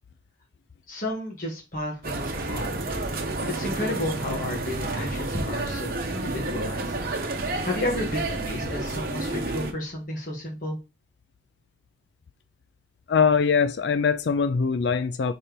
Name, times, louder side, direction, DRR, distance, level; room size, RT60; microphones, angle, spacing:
voice 1, 0.9-2.7 3.5-7.0 7.4-10.8, left 1 dB, 45° left, 1.8 m, -32 dB
sound 1, 2.0-9.7, right 2 dB, 50° right, 1.0 m, -30 dB
voice 2, 13.1-15.3, left 5 dB, 65° left, 0.4 m, -22 dB
4.3 x 4.2 x 5.1 m
head